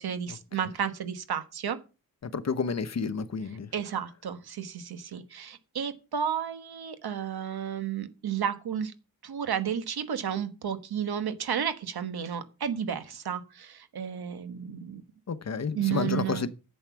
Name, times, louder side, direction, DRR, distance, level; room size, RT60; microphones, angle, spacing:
voice 1, 0.0-1.8 3.7-8.9 9.2-15.0 15.7-16.5, right 8 dB, 90° right, 1.3 m, -32 dB
voice 2, 2.2-3.7 15.3-16.5, left 5 dB, 45° left, 0.9 m, -30 dB
11.0 x 8.0 x 6.0 m
wide cardioid pair, 140°, 37 cm